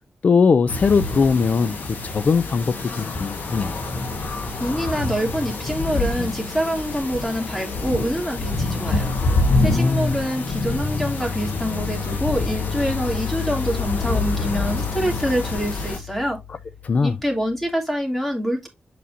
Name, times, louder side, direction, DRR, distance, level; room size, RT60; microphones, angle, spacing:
voice 1, 0.2-3.8 9.6-10.1 16.8-17.1, left 5 dB, 50° left, 0.4 m, -20 dB
sound 1, 0.7-16.0, left 2 dB, 80° left, 1.5 m, -27 dB
sound 2, 1.8-2.3 2.7-2.8 3.1-7.5 10.6-17.7, left 6 dB, 30° left, 1.4 m, -33 dB
voice 2, 4.6-9.1 9.6-16.4 17.0-18.7, equal, 5° left, 2.7 m, -26 dB
7.6 x 5.4 x 2.7 m
wide cardioid pair, 115°, 3 cm